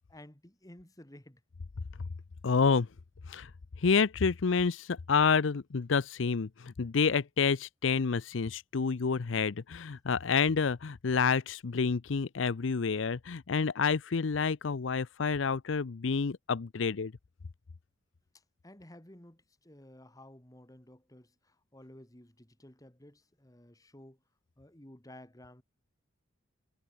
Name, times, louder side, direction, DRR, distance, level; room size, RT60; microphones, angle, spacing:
voice 1, 0.1-1.4 18.3-24.2 24.6-25.6, left 1 dB, 20° left, 2.2 m, -54 dB
voice 2, 2.4-2.9 3.3-3.5 3.8-17.1, left 5 dB, 70° left, 0.6 m, -29 dB
head